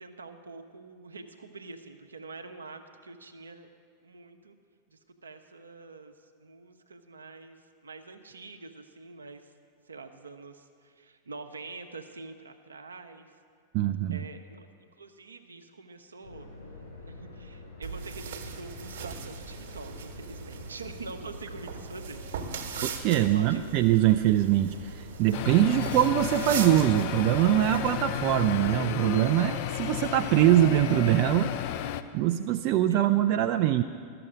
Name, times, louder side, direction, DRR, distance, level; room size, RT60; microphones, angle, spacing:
voice 1, 0.0-3.7 4.0-4.6 4.9-7.6 7.8-9.5 9.9-13.4 14.1-14.7 14.9-16.5 17.0-23.8 32.9-33.0, right 3 dB, 75° right, 6 dB, 0.8 m, -45 dB
voice 2, 13.7-14.2 22.8-31.5 32.1-33.8, right 13 dB, 45° right, 8 dB, 0.3 m, -23 dB
sound 1, 16.2-28.7, left 3 dB, 80° left, 3.8 m, -46 dB
sound 2, 17.8-28.8, right 6 dB, 60° right, 1.2 m, -40 dB
sound 3, 25.3-32.0, left 11 dB, 45° left, 0.4 m, -33 dB
13.0 x 6.8 x 7.5 m, 2.1 s
figure-of-eight pair, 90°, 0 cm